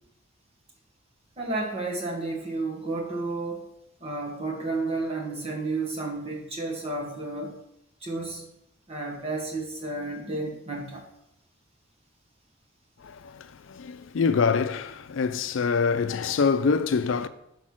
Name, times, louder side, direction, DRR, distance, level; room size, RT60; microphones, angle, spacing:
voice 1, 1.4-3.7 4.0-7.6 8.0-8.5 8.9-11.0, right 2 dB, 30° right, 1.4 m, -32 dB
voice 2, 13.0-17.3, left 5 dB, 75° left, 0.4 m, -25 dB
6.4 x 4.5 x 6.1 m
head